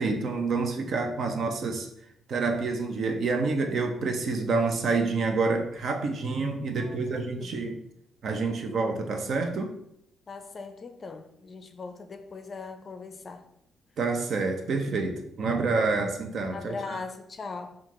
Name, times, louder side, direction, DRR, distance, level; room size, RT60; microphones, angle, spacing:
voice 1, 0.0-1.9 2.3-7.7 8.2-9.7 14.0-16.7, right 3 dB, 60° right, 4 dB, 0.7 m, -28 dB
voice 2, 6.8-7.8 10.3-13.5 16.5-17.8, left 4 dB, 40° left, 7 dB, 0.5 m, -40 dB
4.5 x 2.4 x 3.6 m, 0.75 s
cardioid pair, 90°, 0 cm